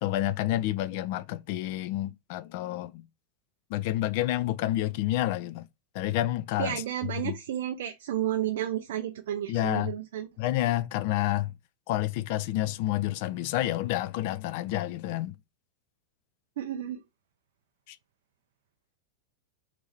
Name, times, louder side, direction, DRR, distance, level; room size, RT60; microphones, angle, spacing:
voice 1, 0.0-3.0 3.7-5.7 5.9-7.3 9.5-9.9 10.4-11.5 11.9-15.4 17.9-18.0, left 15 dB, 50° left, 0.3 m, -29 dB
voice 2, 6.6-10.3 16.6-17.0, right 11 dB, 55° right, 0.4 m, -32 dB
3.0 x 2.6 x 4.4 m
figure-of-eight pair, 90°, 0 cm